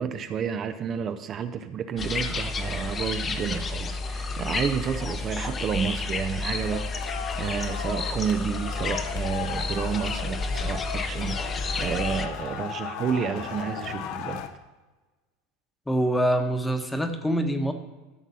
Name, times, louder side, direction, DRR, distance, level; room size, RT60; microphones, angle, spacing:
voice 1, 0.0-6.8 7.1-14.4, right 7 dB, 40° right, 9 dB, 0.5 m, -30 dB
sound 1, 2.0-12.3, left 3 dB, 25° left, 0.9 m, -31 dB
sound 2, 6.5-14.5, left 8 dB, 65° left, 0.9 m, -36 dB
voice 2, 15.9-17.7, right 1 dB, 5° left, 7 dB, 1.1 m, -25 dB
13.0 x 6.0 x 4.1 m, 1.2 s
supercardioid pair, 115°, 0 cm